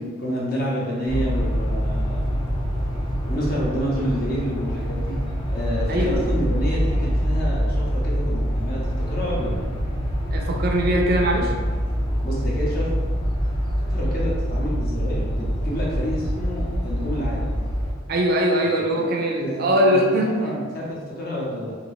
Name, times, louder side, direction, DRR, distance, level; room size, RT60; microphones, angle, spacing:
voice 1, 0.0-2.2 3.2-5.2 5.5-9.6 12.2-12.9 13.9-17.5 18.9-19.1 19.4-21.8, equal, 45° left, -4 dB, 0.7 m, -29 dB
sound 1, 1.1-17.9, equal, 25° left, 0.4 m, -25 dB
voice 2, 5.9-6.2 10.3-11.5 18.1-20.4, equal, 45° right, 1 dB, 0.4 m, -21 dB
2.7 x 2.6 x 3.0 m, 1.4 s
head